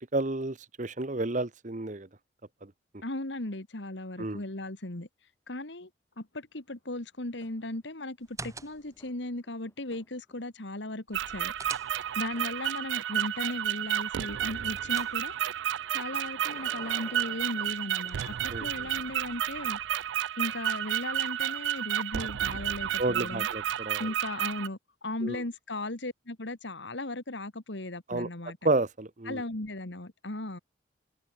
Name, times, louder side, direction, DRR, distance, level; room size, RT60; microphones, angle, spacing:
voice 1, 0.1-2.1 4.2-4.4 18.5-18.7 23.0-24.1 25.2-25.4 28.1-28.3 28.6-29.4, right 2 dB, 40° right, 1.1 m, -30 dB
voice 2, 3.0-5.1 5.5-5.9 6.2-11.5 12.2-15.3 15.9-19.8 20.4-23.5 24.0-28.6 29.3-30.6, left 1 dB, 65° left, 2.2 m, -37 dB
sound 1, 7.4-8.0 8.4-10.8 12.3-12.5 15.9-18.5 20.7-20.8, left 1 dB, 15° left, 3.4 m, -55 dB
sound 2, 8.2-9.1 11.1-12.4 14.3-15.6 17.6-18.7, right 4 dB, 15° right, 4.5 m, -47 dB
sound 3, 11.1-24.7, right 11 dB, 70° right, 0.3 m, -31 dB
head